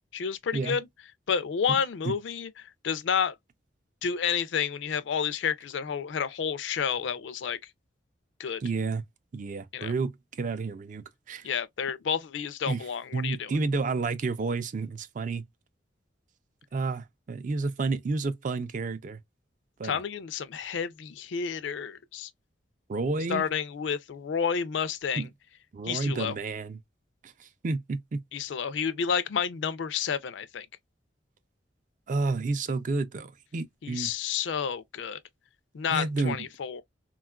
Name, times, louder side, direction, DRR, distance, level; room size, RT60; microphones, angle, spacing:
voice 1, 0.1-0.9 1.3-3.4 4.0-7.6 8.4-8.6 9.7-9.9 11.4-13.5 19.8-22.3 23.3-25.3 25.8-26.4 28.3-30.7 33.8-35.2 35.7-36.8, left 7 dB, 75° left, 0.4 m, -30 dB
voice 2, 8.6-9.0 9.3-11.5 12.7-12.9 13.1-15.4 16.7-19.2 19.8-20.0 22.9-23.4 25.1-25.3 25.7-26.8 27.2-28.2 32.1-34.1 35.9-36.5, right 3 dB, 45° right, 0.4 m, -30 dB
3.5 x 2.3 x 2.2 m
head